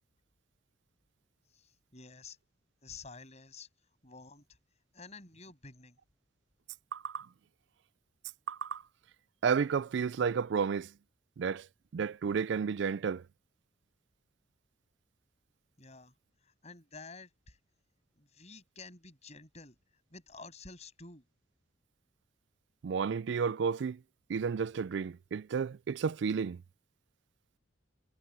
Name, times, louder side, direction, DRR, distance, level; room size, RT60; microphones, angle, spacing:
voice 1, 1.5-2.4 2.8-3.7 4.0-4.4 4.9-6.0 15.8-16.1 16.4-17.6 18.2-19.8 20.1-21.3, left 4 dB, 35° left, 7.5 m, -50 dB
voice 2, 6.9-7.3 8.5-8.8 9.4-10.9 11.4-11.7 11.9-13.2 22.8-24.0 24.3-26.6, right 6 dB, 65° right, 0.3 m, -32 dB
head